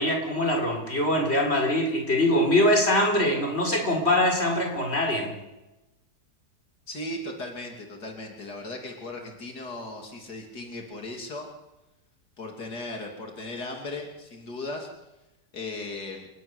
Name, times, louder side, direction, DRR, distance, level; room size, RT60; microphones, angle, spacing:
voice 1, 0.0-5.3, left 1 dB, 40° left, 2 dB, 5.2 m, -23 dB
voice 2, 6.9-11.5 12.4-14.9 15.5-16.3, left 2 dB, 90° left, 2 dB, 3.6 m, -37 dB
29.0 x 12.5 x 9.8 m, 0.98 s
omnidirectional pair, 1.7 m